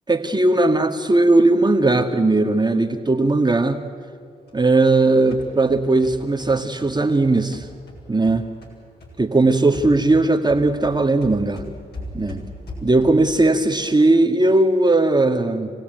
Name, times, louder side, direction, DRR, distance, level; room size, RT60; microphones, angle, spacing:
voice 1, 0.1-3.8 4.5-7.7 8.1-8.5 9.2-11.6 12.1-12.4 12.8-15.7, right 2 dB, 20° right, 3 dB, 2.0 m, -18 dB
sound 1, 4.5-8.8 9.0-13.4, left 1 dB, 60° left, 7.1 m, -39 dB
27.0 x 17.0 x 9.3 m, 2.1 s
supercardioid pair, 50°, 20 cm